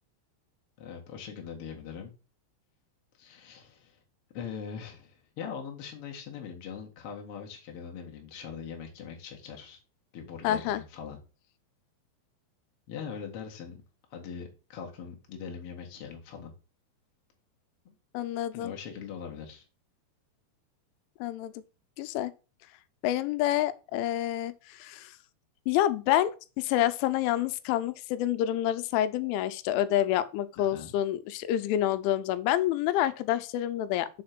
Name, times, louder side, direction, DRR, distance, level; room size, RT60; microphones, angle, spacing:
voice 1, 0.8-2.1 3.2-4.0 4.3-9.8 10.1-11.2 12.9-13.8 14.1-16.5 17.8-17.9 18.5-19.6 30.5-30.9, left 7 dB, 55° left, 1.5 m, -41 dB
voice 2, 10.4-10.8 18.1-18.7 21.2-21.5 22.0-22.3 23.0-25.1 25.7-26.3 26.6-34.1, left 12 dB, 90° left, 3.1 m, -28 dB
6.5 x 4.3 x 5.8 m
omnidirectional pair, 5.4 m